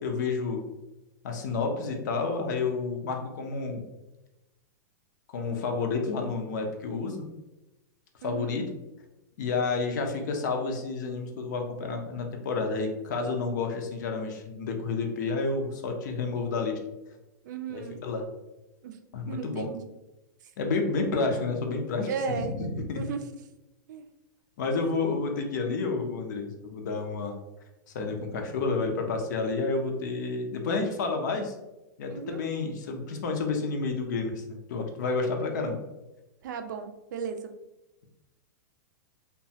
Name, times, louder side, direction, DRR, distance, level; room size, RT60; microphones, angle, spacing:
voice 1, 0.0-0.7 1.2-3.9 5.3-7.3 8.2-8.7 9.4-16.8 17.7-18.3 19.1-19.7 20.6-22.1 22.4-23.0 24.6-27.4 27.9-31.5 32.0-35.8, left 4 dB, 70° left, 3 dB, 0.6 m, -30 dB
voice 2, 8.2-8.6 17.4-18.0 18.8-19.0 19.3-19.9 20.4-20.5 22.1-22.5 22.9-23.4 23.9-24.1 32.1-32.4 36.4-37.5, right 6 dB, 70° right, 7 dB, 0.4 m, -35 dB
2.9 x 2.2 x 2.7 m, 0.99 s
supercardioid pair, 145°, 10 cm